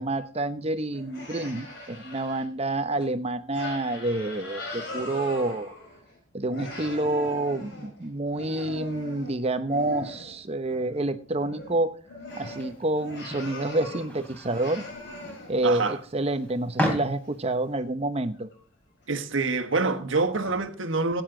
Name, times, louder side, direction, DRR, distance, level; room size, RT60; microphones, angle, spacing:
voice 1, 0.0-5.7 6.3-11.9 12.4-14.9 15.5-18.5, right 2 dB, 30° right, 0.8 m, -28 dB
sound 1, 0.9-2.4 3.0-3.1 3.5-6.2 6.5-10.4 10.7-11.0 11.3-14.1 14.5-15.8 16.3-16.4 17.7-17.8 18.3-18.6 19.0-19.1 19.7-19.8 20.3-20.6, left 2 dB, 60° left, 4.9 m, -40 dB
sound 2, 12.3-17.7, equal, 5° left, 3.2 m, -35 dB
voice 2, 15.6-16.0 19.1-21.2, right 3 dB, 75° right, 1.3 m, -26 dB
15.0 x 9.4 x 3.8 m
head